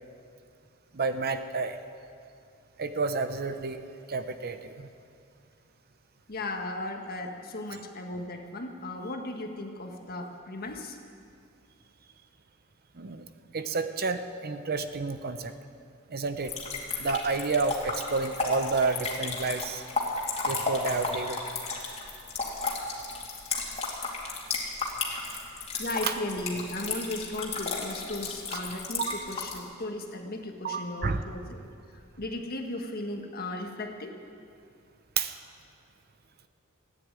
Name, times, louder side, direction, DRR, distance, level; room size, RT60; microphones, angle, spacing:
voice 1, 0.9-1.8 2.8-3.8 4.1-4.9 7.7-7.8 13.0-13.2 13.5-15.5 16.1-16.5 17.0-19.8 20.5-21.4 26.0-26.1 29.1-29.3 30.6-31.2 35.2-35.3, right 4 dB, 45° right, 9 dB, 0.8 m, -30 dB
voice 2, 6.3-11.0 25.8-31.6 32.2-34.1, left 2 dB, 45° left, 3 dB, 1.5 m, -36 dB
sound 1, 16.4-29.6, left 3 dB, 30° left, 2.4 m, -33 dB
15.5 x 10.0 x 8.9 m, 2.4 s
head